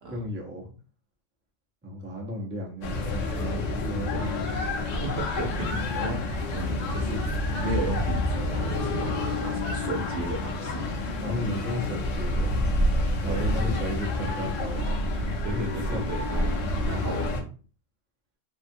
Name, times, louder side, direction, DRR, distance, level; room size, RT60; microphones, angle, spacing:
voice 1, 0.1-0.7 1.8-4.4 5.7-6.0 11.2-12.7 13.2-15.6 15.9-16.0, left 1 dB, 15° right, -1 dB, 0.4 m, -34 dB
sound 1, 2.8-17.4, left 1 dB, 85° left, 1.0 m, -28 dB
voice 2, 5.0-6.2 6.5-7.2 7.6-10.8 13.3-13.8 15.4-16.5 16.8-17.3, right 2 dB, 60° right, 0 dB, 0.9 m, -34 dB
2.7 x 2.3 x 2.6 m, 0.38 s
omnidirectional pair, 1.2 m